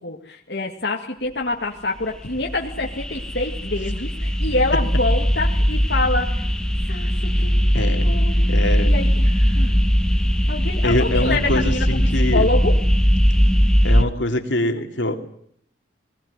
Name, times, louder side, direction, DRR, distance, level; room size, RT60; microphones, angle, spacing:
voice 1, 0.0-6.4 6.9-7.6 8.0-9.7 10.5-11.9 12.3-12.8 14.8-14.9, left 2 dB, 65° left, 0 dB, 2.2 m, -26 dB
sound 1, 2.0-14.0, equal, 5° left, 1.2 m, -19 dB
voice 2, 7.7-8.2 8.5-8.9 10.8-12.5 13.8-15.2, left 1 dB, 80° left, 5 dB, 2.9 m, -23 dB
21.5 x 18.5 x 9.8 m, 0.66 s
head